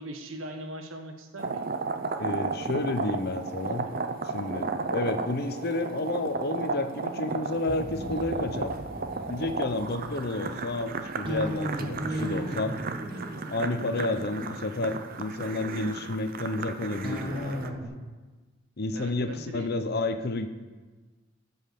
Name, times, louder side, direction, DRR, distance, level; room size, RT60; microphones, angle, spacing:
voice 1, 0.0-1.7 18.9-19.7, right 1 dB, 85° right, 5 dB, 1.2 m, -40 dB
sound 1, 1.4-17.7, right 4 dB, 45° right, 0.6 m, -34 dB
voice 2, 2.2-3.9 4.3-8.7 9.3-12.8 13.5-17.7 18.8-20.5, left 2 dB, 50° left, 9 dB, 0.8 m, -30 dB
sound 2, 7.7-15.9 17.0-17.9, right 1 dB, 25° right, 1.6 m, -37 dB
15.0 x 5.7 x 6.8 m, 1.3 s
head